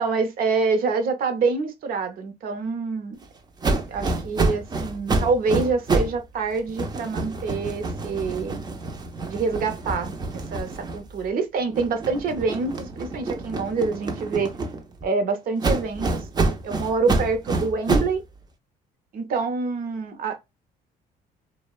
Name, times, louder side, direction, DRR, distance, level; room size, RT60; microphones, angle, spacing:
voice 1, 0.0-3.2 3.9-8.7 9.3-14.5 15.0-16.3 16.6-18.2 19.1-20.4, right 4 dB, 60° right, 0.6 m, -26 dB
sound 1, 3.6-6.2 6.5-11.3 11.7-15.1 15.6-18.2, right 3 dB, 25° right, 0.5 m, -27 dB
2.7 x 2.1 x 2.2 m
cardioid pair, 110°, 17 cm